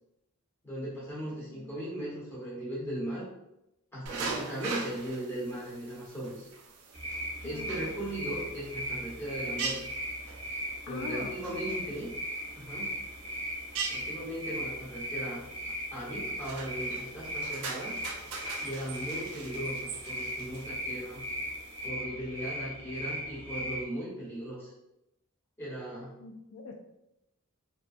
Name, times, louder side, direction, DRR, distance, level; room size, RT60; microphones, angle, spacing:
voice 1, 0.6-3.3 3.9-6.5 7.4-9.8 10.8-12.1 12.5-13.0 13.9-15.4 15.9-18.0 18.6-21.2 21.8-24.7 25.6-26.2, right 1 dB, 10° left, -8 dB, 1.0 m, -38 dB
sound 1, 4.1-21.9, right 4 dB, 80° right, 0.4 m, -42 dB
sound 2, 6.9-23.8, equal, 25° right, 0.6 m, -38 dB
voice 2, 7.4-7.8 10.9-11.4 11.7-11.9 26.2-26.7, left 4 dB, 70° left, 2 dB, 0.3 m, -42 dB
2.5 x 2.2 x 2.4 m, 0.86 s
head